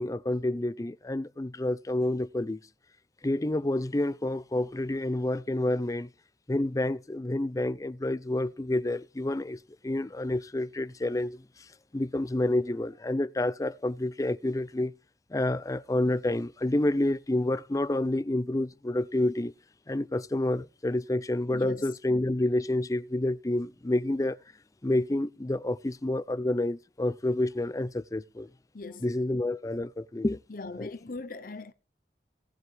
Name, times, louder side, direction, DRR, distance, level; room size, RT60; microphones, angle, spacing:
voice 1, 0.0-2.6 3.2-6.1 6.5-11.4 11.9-14.9 15.3-19.5 19.9-24.4 24.8-28.5 29.0-30.4 30.8-30.9, left 1 dB, 20° left, 0.5 m, -29 dB
voice 2, 21.5-21.9 28.7-29.0 30.5-31.7, left 3 dB, 50° left, 0.9 m, -39 dB
18.0 x 7.7 x 3.4 m
head